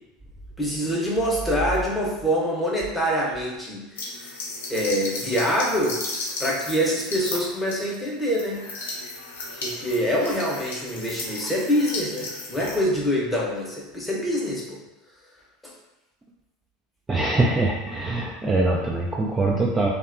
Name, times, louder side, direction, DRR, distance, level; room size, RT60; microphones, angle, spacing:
voice 1, 0.6-4.3 4.7-6.0 6.4-8.6 9.6-14.8 15.6-15.7, equal, 5° left, -4 dB, 0.8 m, -25 dB
sound 1, 4.0-12.8, left 2 dB, 80° left, 0.5 m, -35 dB
voice 2, 17.1-19.9, right 2 dB, 20° right, -3 dB, 0.3 m, -23 dB
2.6 x 2.2 x 2.5 m, 1.0 s
hypercardioid pair, 85°, 0 cm